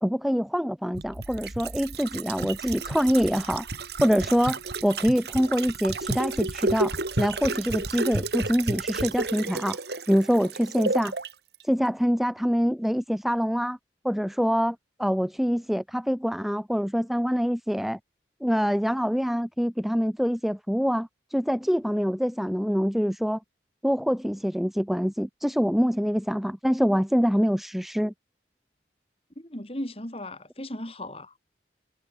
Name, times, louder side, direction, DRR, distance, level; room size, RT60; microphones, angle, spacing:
voice 1, 0.0-3.7 4.0-9.8 10.1-11.1 11.6-13.8 14.0-18.0 18.4-23.4 23.8-28.1, equal, ahead, 1.0 m, -25 dB
sound 1, 0.9-11.3 11.6-11.7, right 3 dB, 60° right, 2.1 m, -31 dB
voice 2, 29.3-31.3, left 1 dB, 30° left, 3.3 m, -36 dB
head